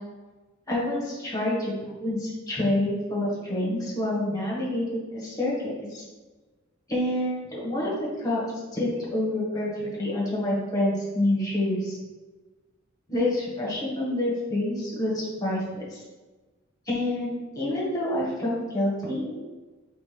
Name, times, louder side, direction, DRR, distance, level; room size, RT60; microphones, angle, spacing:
voice 1, 0.7-6.0 6.9-8.4 8.7-12.0 13.1-16.0 16.9-19.3, left 1 dB, 20° left, -5 dB, 1.4 m, -27 dB
4.2 x 3.2 x 3.7 m, 1.2 s
head